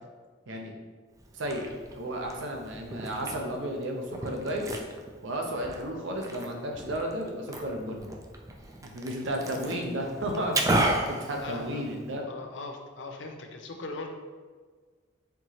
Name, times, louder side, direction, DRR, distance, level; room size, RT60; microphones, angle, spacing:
Liquid, 1.2-12.2, right 1 dB, 15° right, 0.3 m, -34 dB
voice 1, 1.3-1.7 1.9-4.7 5.2-8.1 8.8-12.2, equal, 85° right, 1 dB, 0.7 m, -33 dB
voice 2, 11.4-11.8 12.3-14.1, left 3 dB, 70° left, 3 dB, 0.5 m, -39 dB
4.4 x 3.0 x 2.8 m, 1.5 s
head